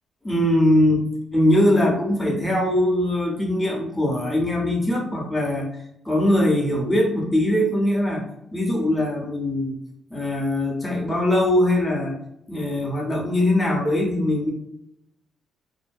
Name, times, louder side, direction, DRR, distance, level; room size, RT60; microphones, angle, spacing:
voice 1, 0.2-1.0 1.3-8.3 8.5-9.8 10.1-12.2 12.5-14.5, left 1 dB, 5° left, -2 dB, 0.8 m, -21 dB
2.6 x 2.1 x 2.2 m, 0.80 s
cardioid pair, 90°, 0 cm